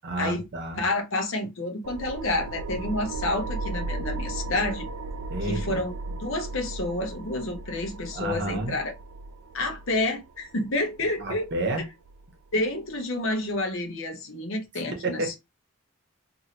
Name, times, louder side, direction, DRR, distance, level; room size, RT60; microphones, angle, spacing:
voice 1, 0.0-0.8 5.3-5.8 8.1-8.7 11.2-11.9 14.8-15.4, right 2 dB, 50° right, 0.8 m, -31 dB
voice 2, 0.8-4.9 5.4-5.9 6.2-8.9 9.5-11.5 12.5-15.4, left 2 dB, 60° left, 0.8 m, -29 dB
sound 1, 1.8-12.9, right 2 dB, 80° right, 0.3 m, -36 dB
2.7 x 2.6 x 2.9 m
head